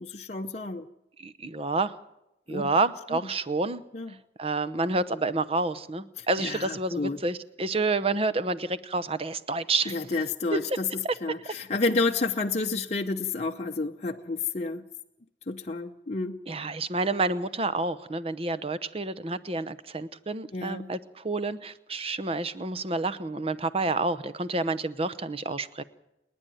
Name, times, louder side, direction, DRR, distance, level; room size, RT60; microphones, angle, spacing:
voice 1, 0.0-0.8 2.5-2.7 3.1-3.2 3.9-4.2 6.2-7.2 9.9-14.8 15.5-16.4 20.5-20.9, left 3 dB, 40° left, 2 dB, 0.7 m, -30 dB
voice 2, 1.2-1.9 2.5-3.8 4.4-10.0 10.5-10.6 11.0-11.1 16.5-25.8, right 3 dB, 35° right, 14 dB, 0.8 m, -29 dB
30.0 x 10.0 x 9.2 m, 0.88 s
head